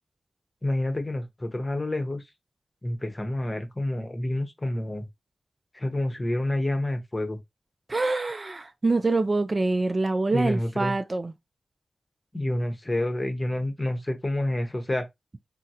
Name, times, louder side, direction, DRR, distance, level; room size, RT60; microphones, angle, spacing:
voice 1, 0.6-2.2 2.8-5.1 5.7-7.4 10.3-11.0 12.3-15.1, left 1 dB, 25° left, 0.8 m, -28 dB
voice 2, 7.9-11.3, right 3 dB, 40° right, 0.3 m, -25 dB
3.6 x 2.0 x 2.8 m
wide cardioid pair, 70°, 0 cm